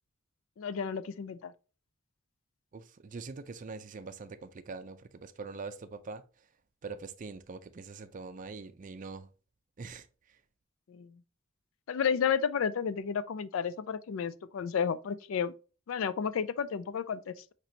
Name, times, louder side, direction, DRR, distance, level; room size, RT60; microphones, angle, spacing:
voice 1, 0.6-1.5 10.9-11.2 11.9-15.5 15.9-17.5, left 7 dB, 85° left, 0.4 m, -32 dB
voice 2, 2.7-6.5 6.8-9.3 9.8-10.4, right 4 dB, 40° right, 0.4 m, -43 dB
5.9 x 3.0 x 2.7 m
head